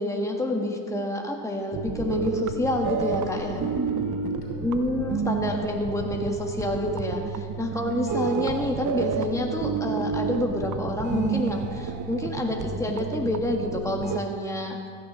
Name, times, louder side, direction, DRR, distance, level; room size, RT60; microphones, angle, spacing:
voice 1, 0.0-3.6 4.6-14.8, left 1 dB, 5° left, 1 dB, 1.5 m, -28 dB
sound 1, 1.7-14.2, right 6 dB, 50° right, 0.7 m, -31 dB
voice 2, 3.5-5.0 7.7-8.3, right 1 dB, 70° left, -2 dB, 3.1 m, -36 dB
15.0 x 6.3 x 6.2 m, 2.2 s
cardioid pair, 60°, 40 cm